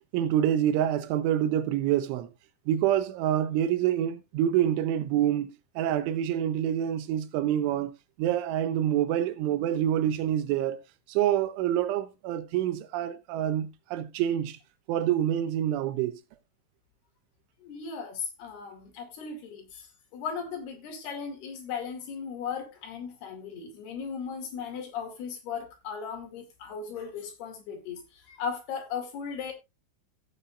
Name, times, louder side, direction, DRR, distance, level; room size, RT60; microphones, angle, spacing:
voice 1, 0.0-2.3 2.7-7.9 8.2-10.8 11.1-14.6 14.9-16.2, right 11 dB, 90° right, 3.4 m, -27 dB
voice 2, 17.6-29.5, left 6 dB, 65° left, 4.2 m, -37 dB
15.5 x 8.3 x 2.5 m
omnidirectional pair, 5.4 m